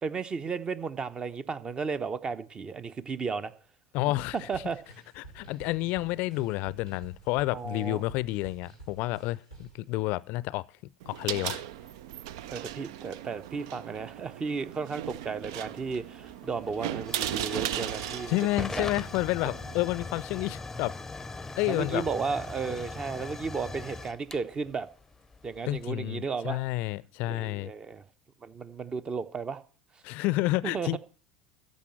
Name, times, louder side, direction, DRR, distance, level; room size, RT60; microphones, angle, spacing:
voice 1, 0.0-3.5 4.5-4.8 7.5-8.0 12.5-18.4 18.8-18.9 21.7-24.9 25.4-26.6 27.3-28.0 28.4-29.6 30.6-31.0, right 5 dB, 30° right, 0.9 m, -34 dB
voice 2, 3.9-4.4 5.2-10.7 11.1-11.6 18.3-20.9 21.6-22.0 25.7-27.7 30.0-31.0, left 19 dB, 55° left, 0.5 m, -30 dB
sound 1, 4.2-9.8, right 2 dB, 85° right, 5.0 m, -50 dB
sound 2, 11.0-19.8, right 12 dB, 65° right, 0.5 m, -37 dB
Hiss / Fire / Tick, 15.4-25.8, left 3 dB, 10° left, 0.7 m, -41 dB
14.0 x 5.4 x 7.5 m
figure-of-eight pair, 75°, 3 cm